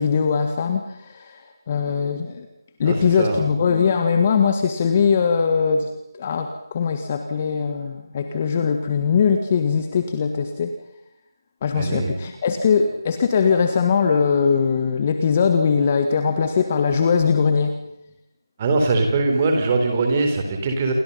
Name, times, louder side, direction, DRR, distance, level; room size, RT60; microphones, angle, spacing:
voice 1, 0.0-2.5 2.8-5.9 6.2-10.7 11.6-17.7, left 6 dB, 20° left, 7 dB, 1.7 m, -21 dB
voice 2, 2.8-3.5 11.7-12.1 18.6-20.9, right 3 dB, 20° right, 4 dB, 4.0 m, -21 dB
28.5 x 24.0 x 5.6 m, 0.80 s
figure-of-eight pair, 170°, 2 cm